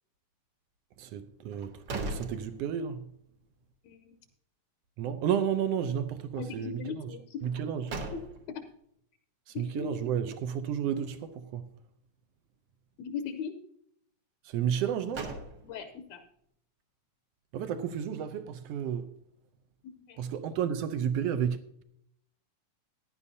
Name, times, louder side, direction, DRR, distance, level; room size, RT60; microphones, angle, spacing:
voice 1, 1.0-3.1 5.0-7.1 7.4-7.9 9.5-11.7 14.4-15.3 17.5-19.1 20.2-21.8, right 8 dB, 80° right, 1.4 m, -32 dB
sound 1, 1.5-3.1 3.5-3.6 7.4-8.7 14.7-16.0, right 2 dB, 55° right, 1.3 m, -40 dB
voice 2, 3.8-4.1 6.4-7.4 8.5-8.6 9.5-9.9 13.0-13.6 15.6-16.2 20.1-20.2, left 7 dB, 75° left, 1.9 m, -38 dB
15.5 x 10.5 x 2.7 m
omnidirectional pair, 3.5 m